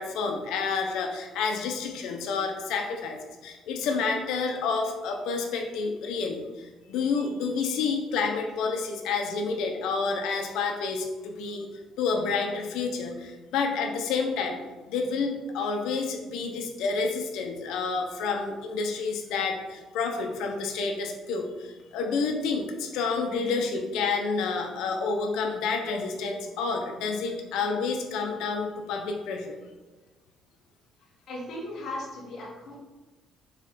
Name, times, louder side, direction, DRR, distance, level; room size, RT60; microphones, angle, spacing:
voice 1, 0.0-11.7 12.0-14.6 14.9-29.6, left 4 dB, 85° left, 3 dB, 1.0 m, -29 dB
voice 2, 31.3-32.8, left 1 dB, 50° left, -4 dB, 2.2 m, -37 dB
7.2 x 3.4 x 5.2 m, 1.2 s
cardioid pair, 145°, 0 cm